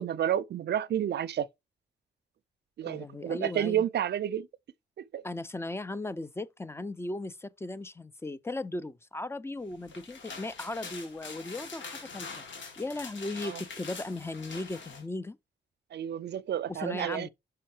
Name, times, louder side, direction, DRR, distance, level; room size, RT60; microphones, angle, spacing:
voice 1, 0.0-1.5 2.8-4.5 5.0-5.2 13.4-13.6 15.9-17.3, right 10 dB, 60° right, 0.5 m, -30 dB
voice 2, 2.8-3.9 5.2-12.4 12.8-15.4 16.7-17.3, left 2 dB, 10° left, 0.5 m, -37 dB
sound 1, 9.7-15.0, left 4 dB, 75° left, 2.3 m, -44 dB
5.6 x 4.7 x 4.4 m
cardioid pair, 100°, 20 cm